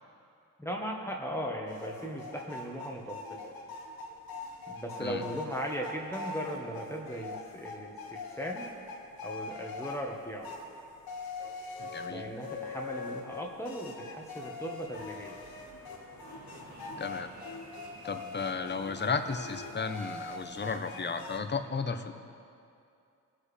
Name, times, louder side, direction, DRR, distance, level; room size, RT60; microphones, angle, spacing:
voice 1, 0.6-3.5 4.7-8.7 9.2-10.5 12.1-15.4, equal, 5° left, -1 dB, 1.4 m, -38 dB
sound 1, 1.7-21.4, left 3 dB, 75° left, 1.3 m, -43 dB
voice 2, 11.8-12.3 17.0-17.3 18.0-22.1, left 4 dB, 30° left, 8 dB, 0.8 m, -34 dB
Fixed-wing aircraft airplane, 14.9-20.5, right 2 dB, 50° right, 1.9 m, -53 dB
20.0 x 7.6 x 3.3 m, 2.5 s
cardioid pair, 65°, 36 cm